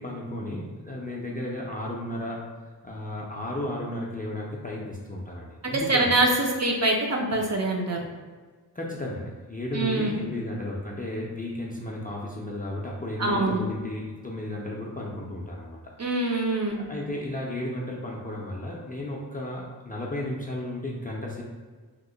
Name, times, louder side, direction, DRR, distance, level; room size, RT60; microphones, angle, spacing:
voice 1, 0.0-2.4 2.8-6.1 8.7-15.8 16.7-21.4, left 1 dB, 20° left, -4 dB, 0.3 m, -34 dB
voice 2, 5.6-8.0 9.7-10.2 13.2-13.6 16.0-16.9, right 2 dB, 40° right, 0 dB, 0.4 m, -24 dB
2.9 x 2.0 x 3.7 m, 1.4 s
wide cardioid pair, 140°, 42 cm